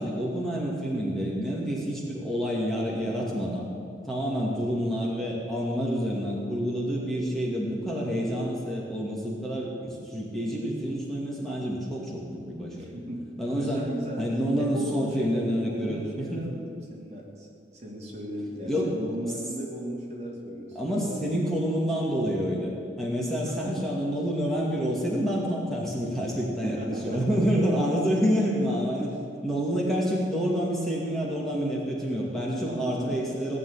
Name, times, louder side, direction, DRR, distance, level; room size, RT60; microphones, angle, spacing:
voice 1, 0.0-3.7 4.0-12.9 13.4-13.8 14.2-16.4 18.7-18.9 20.7-22.7 23.0-29.1 29.4-33.6, equal, ahead, -4 dB, 2.3 m, -28 dB
voice 2, 4.5-4.8 12.8-13.2 13.5-14.3 14.6-21.2 23.4-23.9 26.6-27.4 32.7-33.1, right 1 dB, 40° right, -2 dB, 3.0 m, -37 dB
18.0 x 7.3 x 10.0 m, 2.4 s
head